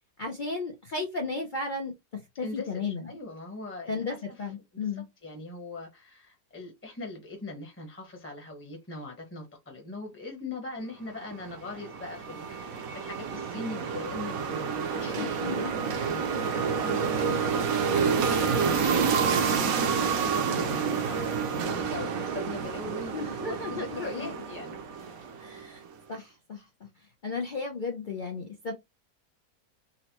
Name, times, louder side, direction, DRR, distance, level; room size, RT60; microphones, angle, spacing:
voice 1, 0.2-3.1 3.9-5.0 15.2-15.7 21.6-21.7 23.1-24.3 25.4-25.8 26.1-26.9 27.2-28.7, left 3 dB, 75° left, 0.4 m, -34 dB
voice 2, 2.4-17.8 18.3-25.7, left 2 dB, 10° left, 0.6 m, -42 dB
sound 1, 11.3-25.7, right 6 dB, 65° right, 1.0 m, -29 dB
3.9 x 2.1 x 2.9 m
omnidirectional pair, 1.8 m